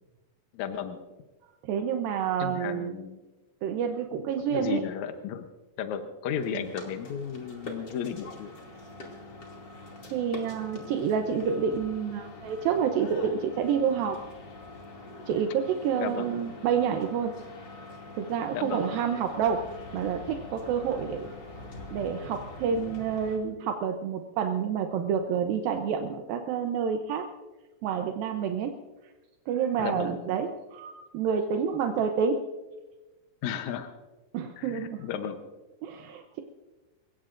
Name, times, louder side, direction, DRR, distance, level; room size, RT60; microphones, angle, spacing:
voice 1, 0.5-1.0 2.4-3.2 4.5-5.5 5.8-8.5 16.0-16.4 18.5-18.9 29.8-30.2 33.4-33.9 34.6-35.5, left 8 dB, 70° left, 6 dB, 1.9 m, -34 dB
voice 2, 1.7-2.9 3.6-4.8 6.5-6.6 10.1-14.2 15.3-17.3 18.1-19.6 19.9-21.6 21.9-27.3 27.8-28.7 29.5-32.4 34.3-35.1 35.8-36.4, right 7 dB, 80° right, 4 dB, 2.6 m, -28 dB
sound 1, 6.3-23.4, left 2 dB, 35° left, 2.7 m, -44 dB
28.5 x 16.5 x 2.6 m, 1.2 s
omnidirectional pair, 4.2 m